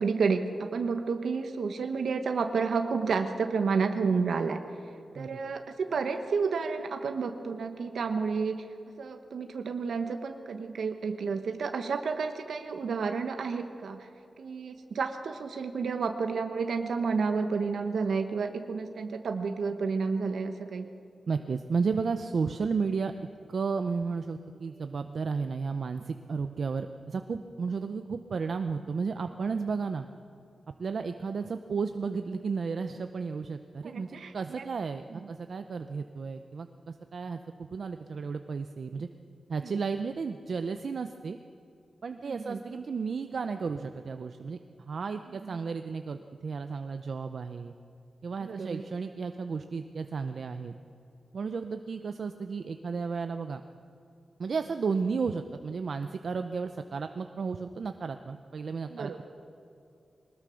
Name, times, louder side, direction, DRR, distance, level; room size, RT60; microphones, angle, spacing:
voice 1, 0.0-4.6 5.1-8.6 9.0-14.1 14.4-20.9 33.8-34.6 35.1-35.3 39.6-39.7 42.2-42.6 45.4-45.6 48.4-48.8 58.9-59.2, right 5 dB, 75° right, 6 dB, 1.1 m, -31 dB
voice 2, 21.3-23.1 23.5-30.1 30.8-39.1 39.5-41.4 42.0-44.6 44.9-47.7 48.2-50.7 51.3-53.6 54.4-59.2, right 5 dB, 55° right, 8 dB, 0.7 m, -33 dB
21.5 x 20.0 x 6.4 m, 2.6 s
wide cardioid pair, 175°, 0 cm